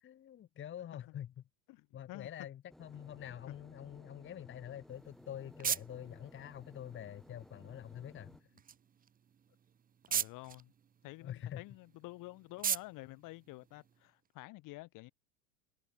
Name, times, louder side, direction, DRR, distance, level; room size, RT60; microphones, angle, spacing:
voice 1, 0.0-1.3 1.9-8.4 11.2-11.6, left 10 dB, 25° left, 1.4 m, -46 dB
voice 2, 1.7-2.5 10.1-10.7 11.0-15.1, left 21 dB, 45° left, 2.4 m, -50 dB
sound 1, 2.7-8.4, equal, ahead, 1.1 m, -58 dB
sound 2, 4.8-14.3, right 8 dB, 20° right, 1.0 m, -42 dB
figure-of-eight pair, 85°, 43 cm